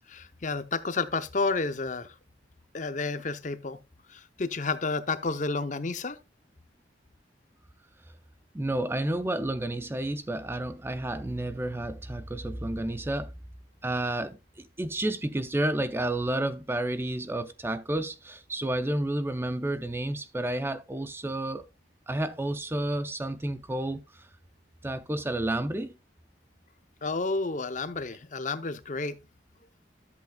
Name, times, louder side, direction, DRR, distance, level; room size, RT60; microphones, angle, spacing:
voice 1, 0.1-2.1 2.7-3.8 4.1-6.2 27.0-29.2, left 3 dB, 40° left, 0.6 m, -31 dB
voice 2, 8.5-13.3 13.8-21.7 22.1-24.3 24.8-26.0, right 1 dB, 10° right, 0.4 m, -31 dB
13.0 x 8.1 x 2.2 m
head